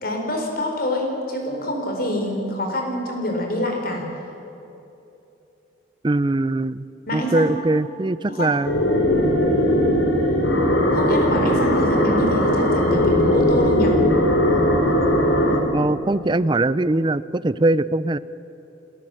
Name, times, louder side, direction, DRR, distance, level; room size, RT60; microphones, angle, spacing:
voice 1, 0.0-4.1 7.1-7.5 8.3-8.6 10.9-14.0, left 1 dB, 50° left, 2 dB, 4.2 m, -26 dB
voice 2, 6.0-6.8 7.1-8.9 15.7-18.2, right 2 dB, 25° right, 16 dB, 0.5 m, -21 dB
sound 1, 8.7-15.6, equal, 80° left, 3.7 m, -19 dB
28.5 x 13.5 x 7.7 m, 3.0 s
head